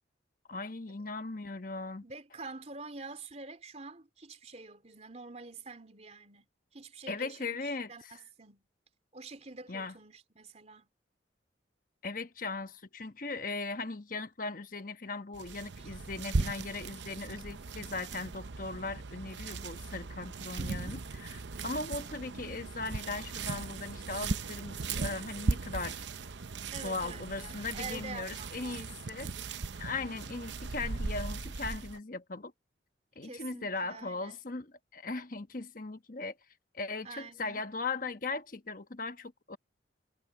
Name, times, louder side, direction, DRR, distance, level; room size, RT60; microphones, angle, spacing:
voice 1, 0.5-2.0 7.1-8.1 9.7-9.9 12.0-26.0 26.8-29.3 29.8-32.5 33.1-36.4 36.7-39.6, left 3 dB, 45° left, 1.2 m, -38 dB
voice 2, 2.0-6.5 6.7-8.7 9.1-10.9 15.8-15.9 20.6-21.0 26.7-29.1 33.2-34.4 37.0-37.6, right 3 dB, 35° right, 3.6 m, -47 dB
sound 1, 15.3-32.0, right 3 dB, 70° right, 0.7 m, -38 dB
head